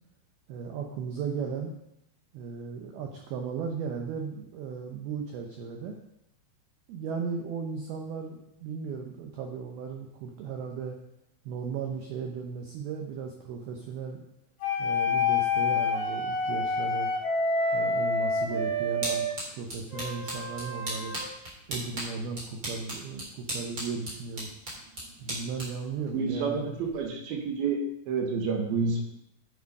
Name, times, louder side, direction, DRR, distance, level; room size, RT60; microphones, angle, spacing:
voice 1, 0.5-1.7 2.3-6.0 6.9-11.0 11.5-14.2 14.8-17.1 17.7-21.2 21.7-24.5 25.2-26.7, right 5 dB, 90° right, 3 dB, 2.1 m, -36 dB
sound 1, 14.6-19.3 19.9-21.2, left 3 dB, 55° left, 2.3 m, -28 dB
sound 2, 18.3-27.1, right 1 dB, 25° right, 3.2 m, -39 dB
voice 2, 26.1-27.8 28.1-29.0, right 5 dB, 65° right, 1 dB, 2.5 m, -29 dB
8.3 x 7.9 x 5.3 m, 0.78 s
omnidirectional pair, 5.7 m